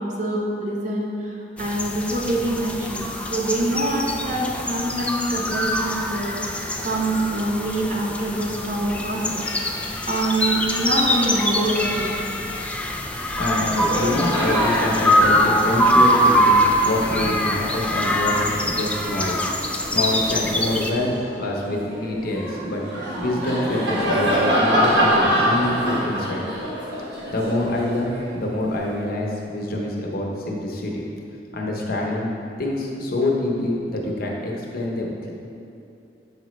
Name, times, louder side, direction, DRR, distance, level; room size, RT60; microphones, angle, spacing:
voice 1, 0.0-9.4 10.0-12.1, right 1 dB, 45° right, -2 dB, 0.9 m, -25 dB
sound 1, 1.6-20.9, equal, 5° left, 0.3 m, -23 dB
sound 2, 8.9-18.7, left 4 dB, 80° left, 0.4 m, -39 dB
Laughter, 13.0-13.2 13.5-20.2 20.7-28.9, equal, 75° right, 1.5 m, -26 dB
voice 2, 13.4-19.5 19.9-22.8 23.2-26.4 27.3-31.0 31.5-32.3 32.6-35.3, left 1 dB, 55° left, -1 dB, 0.9 m, -26 dB
7.2 x 5.0 x 3.1 m, 2.7 s
head